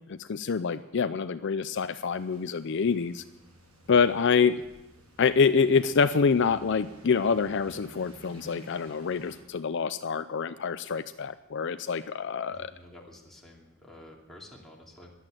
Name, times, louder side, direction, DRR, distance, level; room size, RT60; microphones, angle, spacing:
voice 1, 0.2-3.2 3.9-4.5 5.2-12.7, left 5 dB, 55° left, 12 dB, 0.5 m, -26 dB
sound 1, 2.1-9.4, right 2 dB, 90° right, 5.7 m, -54 dB
voice 2, 12.5-15.1, left 1 dB, ahead, -2 dB, 2.6 m, -50 dB
14.0 x 11.0 x 9.0 m, 1.0 s
head